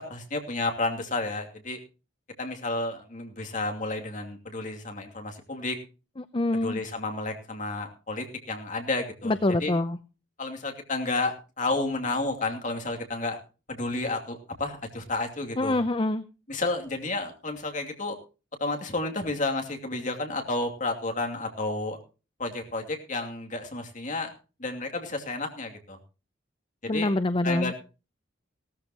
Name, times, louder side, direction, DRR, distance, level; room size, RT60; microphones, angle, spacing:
voice 1, 0.0-1.8 2.4-5.8 6.6-9.7 10.4-13.4 13.7-15.8 16.5-18.2 18.6-22.0 22.4-24.3 24.6-26.0 26.8-27.1 27.4-27.8, left 2 dB, 45° left, 3 dB, 2.6 m, -31 dB
voice 2, 6.2-6.8 9.2-10.0 15.6-16.2 26.9-27.7, left 2 dB, 30° left, 12 dB, 0.6 m, -25 dB
17.5 x 13.5 x 3.0 m, 0.32 s
head